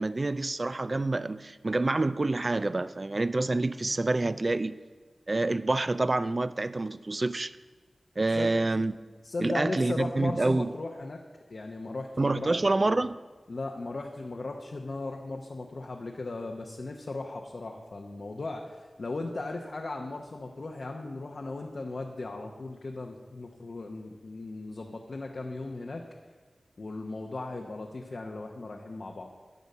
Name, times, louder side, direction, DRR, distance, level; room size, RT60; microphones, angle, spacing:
voice 1, 0.0-4.8 5.3-7.5 8.2-8.9 9.4-10.7 12.2-13.2, right 2 dB, 45° right, 0.4 m, -27 dB
voice 2, 9.2-11.2 11.5-12.5 13.5-26.0 26.8-29.3, left 2 dB, 65° left, 0.8 m, -37 dB
10.5 x 5.2 x 8.3 m
wide cardioid pair, 55°, 0 cm